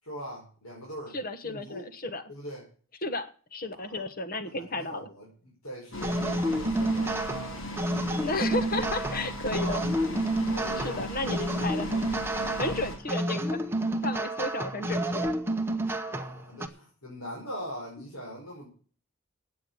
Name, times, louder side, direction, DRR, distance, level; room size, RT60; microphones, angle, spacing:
voice 1, 0.0-1.2 1.4-1.9 2.3-2.6 3.7-4.0 4.5-7.6 8.7-8.9 9.5-9.8 10.5-11.1 11.4-11.7 16.1-18.7, equal, 85° left, -4 dB, 4.9 m, -41 dB
voice 2, 1.1-2.2 3.0-5.1 8.2-9.8 10.8-12.0 12.6-13.6 14.0-15.3, left 2 dB, 40° left, 10 dB, 1.2 m, -33 dB
sound 1, 5.9-13.0, equal, 65° left, 3.4 m, -38 dB
sound 2, 6.0-16.7, right 1 dB, 10° right, 0.8 m, -29 dB
8.7 x 8.4 x 9.3 m, 0.41 s
head